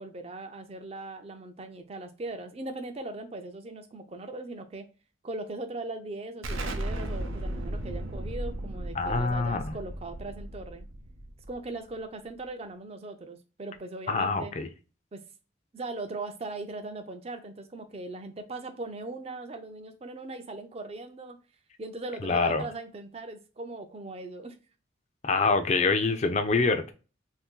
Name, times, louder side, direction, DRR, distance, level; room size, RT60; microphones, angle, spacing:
voice 1, 0.0-4.9 5.2-10.9 11.5-14.5 15.1-15.2 15.7-21.4 21.8-24.6, right 2 dB, 30° right, 0.4 m, -39 dB
Explosion, 6.4-11.9, right 1 dB, 90° right, 0.6 m, -35 dB
voice 2, 9.0-9.7 14.1-14.7 22.2-22.6 25.2-26.9, left 4 dB, 35° left, 0.4 m, -25 dB
2.6 x 2.5 x 3.6 m
head